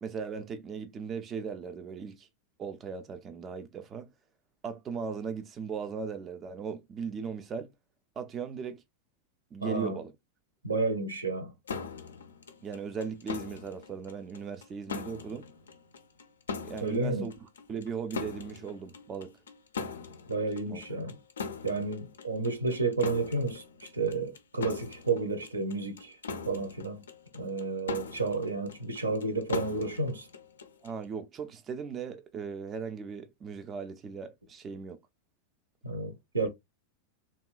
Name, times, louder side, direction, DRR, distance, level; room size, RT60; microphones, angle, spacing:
voice 1, 0.0-2.3 2.6-4.1 4.6-7.7 8.2-8.8 9.5-10.1 12.6-15.5 16.6-19.3 20.7-20.8 30.8-35.0, right 6 dB, 25° right, 0.3 m, -38 dB
voice 2, 9.6-10.0 10.6-11.5 16.8-17.3 20.3-21.2 21.6-26.1 26.5-27.0 27.3-30.3 35.8-36.5, right 3 dB, 75° right, 0.5 m, -31 dB
sound 1, 11.7-31.0, left 5 dB, 70° left, 0.4 m, -41 dB
2.8 x 2.1 x 2.2 m
figure-of-eight pair, 90°, 0 cm